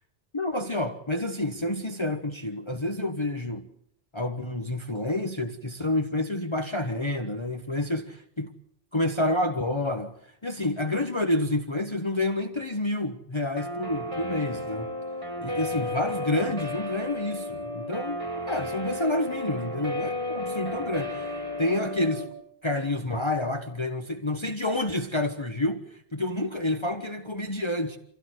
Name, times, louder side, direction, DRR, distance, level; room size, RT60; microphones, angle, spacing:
voice 1, 0.3-3.7 4.1-8.5 8.9-10.1 10.4-14.9 15.4-22.3 22.6-28.0, left 1 dB, 30° left, 1.3 m, -29 dB
Guitar, 13.6-22.3, left 1 dB, 30° right, 4.7 m, -33 dB
26.5 x 16.5 x 8.0 m
omnidirectional pair, 1.0 m